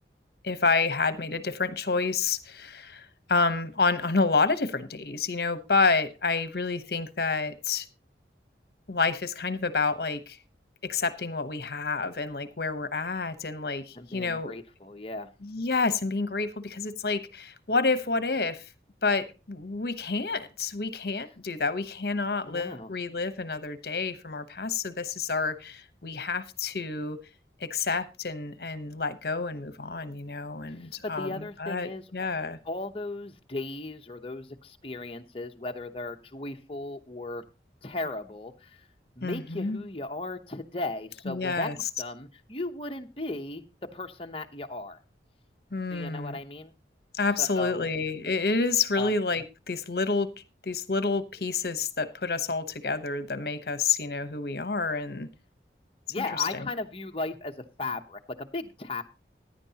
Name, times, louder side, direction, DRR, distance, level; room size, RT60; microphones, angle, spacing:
voice 1, 0.4-7.9 8.9-10.4 10.8-14.5 15.4-18.6 19.0-27.2 27.6-32.6 39.2-39.8 41.3-41.8 45.7-46.4 47.2-50.3 50.7-55.3 56.2-56.7, left 4 dB, 60° left, 12 dB, 1.0 m, -29 dB
voice 2, 13.9-15.3 22.4-22.9 30.7-30.9 31.2-32.0 32.6-37.4 37.8-38.8 39.2-43.6 43.9-45.0 45.9-46.7 47.4-47.9 49.0-49.1 56.1-59.0, left 2 dB, 30° left, 5 dB, 0.9 m, -36 dB
16.0 x 10.0 x 2.9 m, 0.29 s
head